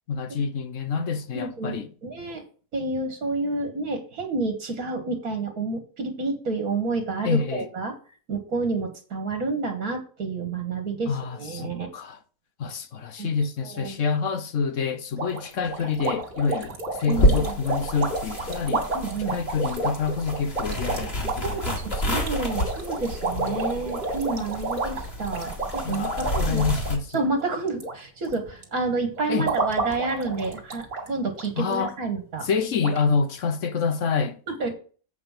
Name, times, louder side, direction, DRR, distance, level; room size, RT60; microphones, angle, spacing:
voice 1, 0.1-1.9 7.2-7.7 11.1-12.2 12.6-18.9 19.3-22.2 23.5-23.8 25.8-27.2 29.3-29.5 31.6-31.9 32.4-34.4, left 5 dB, 55° left, 1.1 m, -27 dB
voice 2, 1.3-2.4 2.7-7.9 8.3-11.9 13.2-13.3 13.7-14.0 17.1-17.5 18.9-19.4 21.4-26.6 27.1-32.5 34.5-34.7, right 3 dB, 65° right, 2.0 m, -29 dB
sound 1, 15.2-27.9 28.2-28.6 29.1-31.1 31.3-31.5 31.8-31.9 32.5-32.6 32.8-33.0, right 2 dB, 50° right, 2.4 m, -31 dB
sound 2, 17.1-27.0, equal, 40° left, 2.5 m, -29 dB
8.0 x 5.4 x 5.6 m
omnidirectional pair, 1.7 m